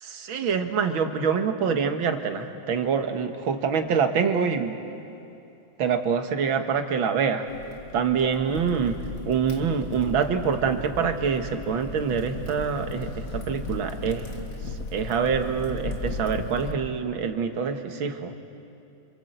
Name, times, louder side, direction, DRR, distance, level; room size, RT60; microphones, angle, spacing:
voice 1, 0.0-4.8 5.8-7.5 7.9-14.3 14.9-18.3, right 6 dB, 80° right, 7 dB, 2.2 m, -25 dB
Crackle, 7.5-16.7, left 2 dB, 45° left, 1.9 m, -36 dB
27.5 x 27.0 x 8.0 m, 2.7 s
omnidirectional pair, 2.2 m